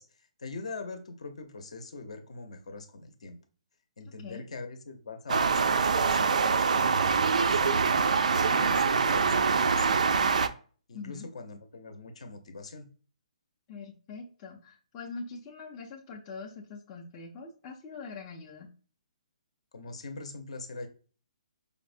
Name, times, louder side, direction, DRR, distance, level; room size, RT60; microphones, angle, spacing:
voice 1, 0.0-3.4 4.0-8.0 8.3-10.3 10.9-12.9 19.7-20.9, left 3 dB, 60° left, 7 dB, 0.6 m, -42 dB
sound 1, 5.3-10.5, right 5 dB, 75° right, 0.3 m, -24 dB
voice 2, 10.9-11.3 13.7-18.7, left 4 dB, 15° left, -3 dB, 0.4 m, -43 dB
4.9 x 2.1 x 2.5 m, 0.39 s
hypercardioid pair, 175°, 4 cm